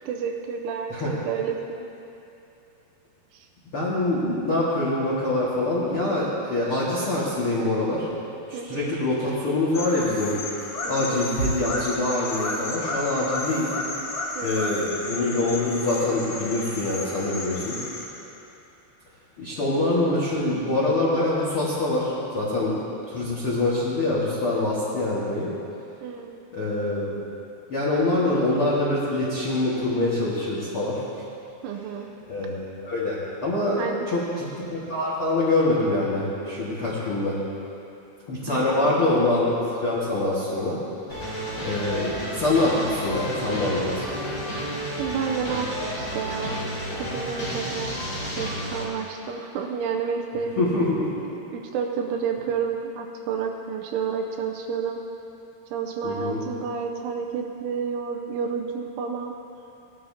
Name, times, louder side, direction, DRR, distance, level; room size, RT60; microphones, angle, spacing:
voice 1, 0.1-1.9 3.3-3.5 8.5-8.9 10.8-11.3 14.4-14.8 26.0-26.5 31.6-32.1 33.8-34.1 38.5-38.9 45.0-46.7 47.0-50.6 51.5-55.0 55.7-59.4, right 6 dB, 85° right, 2 dB, 3.0 m, -30 dB
voice 2, 3.7-8.1 8.5-10.3 10.8-13.7 14.4-17.8 19.4-22.8 23.1-25.5 26.5-27.1 27.7-31.0 32.3-37.4 38.3-40.8 41.6-44.0 50.6-50.8 56.0-56.4, left 2 dB, 85° left, -9 dB, 1.2 m, -25 dB
sound 1, 9.7-18.0, left 2 dB, 65° left, 1.7 m, -33 dB
sound 2, 41.1-48.8, equal, 30° left, 3.3 m, -31 dB
18.5 x 12.5 x 2.8 m, 2.8 s
omnidirectional pair, 5.6 m